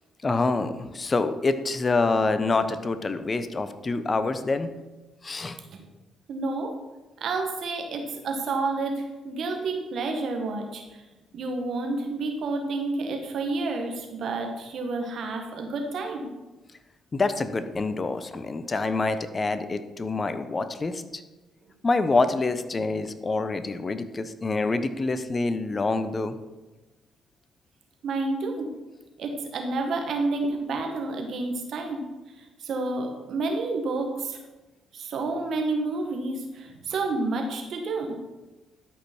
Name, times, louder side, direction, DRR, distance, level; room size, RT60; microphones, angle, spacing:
voice 1, 0.2-4.7 5.2-5.6 17.1-21.2 21.8-26.4, left 3 dB, 35° left, 11 dB, 0.8 m, -26 dB
voice 2, 6.3-6.7 7.2-11.0 11.3-16.3 28.0-28.7 29.2-32.0 32.4-34.4 34.9-38.2, right 3 dB, 60° right, 3 dB, 1.5 m, -30 dB
12.5 x 5.4 x 4.5 m, 1.1 s
hypercardioid pair, 50°, 0 cm